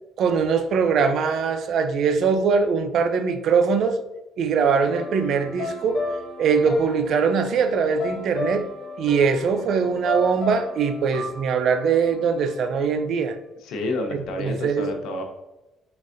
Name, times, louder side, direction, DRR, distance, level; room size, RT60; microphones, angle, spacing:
voice 1, 0.2-4.0 4.4-6.0 6.4-8.7 9.0-13.4 14.1-14.9, right 5 dB, 60° right, 0.4 m, -22 dB
sound 1, 4.8-13.0, left 3 dB, 50° left, 0.8 m, -34 dB
voice 2, 13.6-15.2, left 2 dB, 85° left, 0.7 m, -29 dB
4.2 x 3.9 x 2.5 m
cardioid pair, 130°, 0 cm